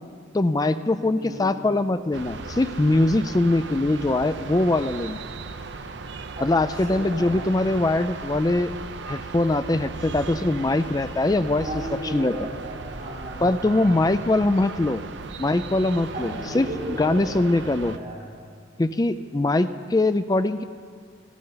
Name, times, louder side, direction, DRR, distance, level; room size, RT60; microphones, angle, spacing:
voice 1, 0.3-5.2 6.4-8.7 9.1-11.7 12.1-12.3 13.4-15.0 15.4-17.9 18.8-20.6, left 2 dB, 20° left, 11 dB, 0.3 m, -22 dB
voice 2, 1.1-1.5 6.3-6.5 6.7-7.5 11.5-14.0 16.1-18.2, right 1 dB, 40° right, -7 dB, 3.9 m, -35 dB
sound 1, 2.1-18.0, right 4 dB, 60° right, 0.6 m, -37 dB
17.0 x 15.5 x 4.0 m, 2.1 s
head